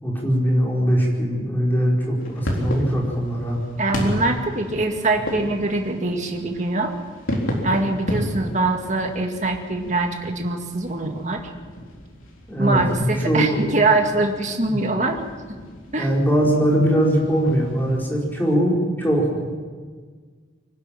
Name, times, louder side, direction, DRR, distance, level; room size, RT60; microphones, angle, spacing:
voice 1, 0.0-3.6 12.5-13.8 14.7-14.8 16.0-19.4, equal, 10° left, -3 dB, 4.7 m, -21 dB
sound 1, 2.2-18.1, equal, 90° left, 3.9 m, -33 dB
voice 2, 3.8-6.9 7.6-11.4 12.6-15.2 15.9-16.1, right 2 dB, 35° right, 3 dB, 2.0 m, -23 dB
25.0 x 12.5 x 9.0 m, 1.5 s
head